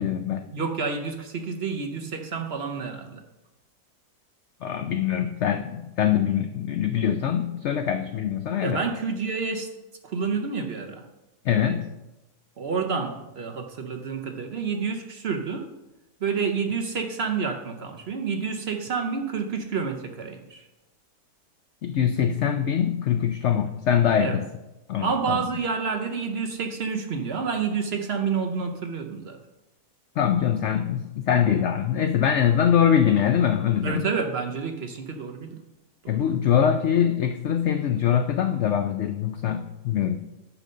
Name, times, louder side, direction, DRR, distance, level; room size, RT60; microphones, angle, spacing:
voice 1, 0.0-0.4 4.6-8.8 11.4-11.9 21.8-24.5 24.9-25.4 30.2-34.1 36.1-40.2, left 9 dB, 70° left, 7 dB, 0.6 m, -23 dB
voice 2, 0.5-3.2 8.6-9.7 10.0-11.1 12.6-15.7 16.2-20.7 24.2-24.4 25.0-29.4 33.8-35.6 36.0-36.3, right 5 dB, 55° right, 5 dB, 0.8 m, -29 dB
9.9 x 4.0 x 6.5 m, 0.99 s
omnidirectional pair, 1.7 m